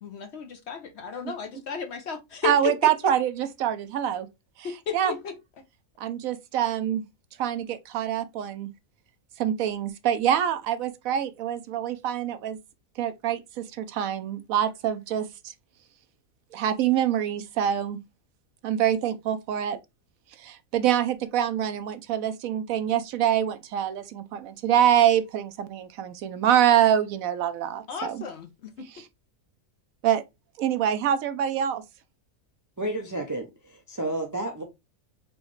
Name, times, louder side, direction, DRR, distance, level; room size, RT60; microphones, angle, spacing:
voice 1, 0.0-2.9 4.6-5.3 27.9-28.5 28.8-28.9, left 7 dB, 60° left, 0.8 m, -33 dB
voice 2, 2.4-4.3 4.6-5.2 6.0-7.0 7.4-8.7 9.4-12.6 13.0-15.5 16.5-18.0 18.6-19.8 20.4-28.2 28.9-29.1 30.0-30.2 30.6-31.8, right 10 dB, 75° right, 1.0 m, -25 dB
voice 3, 32.8-34.6, right 1 dB, 25° right, 0.4 m, -31 dB
4.7 x 3.1 x 3.1 m
omnidirectional pair, 1.5 m